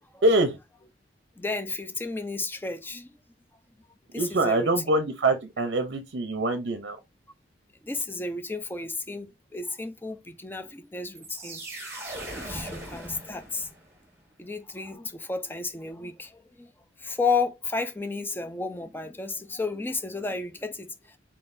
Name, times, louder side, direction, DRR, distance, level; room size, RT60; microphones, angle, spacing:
voice 1, 0.2-0.6 4.1-7.0, right 2 dB, 70° right, 0.6 m, -24 dB
voice 2, 1.4-3.1 4.1-4.7 7.8-11.6 12.3-13.7 14.4-16.7 17.0-21.2, left 3 dB, 10° left, 0.4 m, -32 dB
sound 1, 11.1-13.9, right 1 dB, 15° right, 1.6 m, -39 dB
4.3 x 3.9 x 2.6 m
head